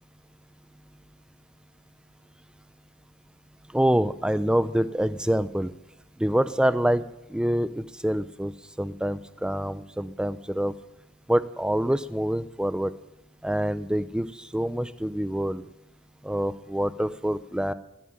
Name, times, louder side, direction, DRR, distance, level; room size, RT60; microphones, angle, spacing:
voice 1, 3.7-5.7 6.2-7.0 7.3-8.5 8.8-10.7 11.3-12.9 13.4-15.7 16.2-17.7, right 1 dB, 5° right, 14 dB, 0.4 m, -26 dB
13.0 x 5.8 x 8.8 m, 0.95 s
head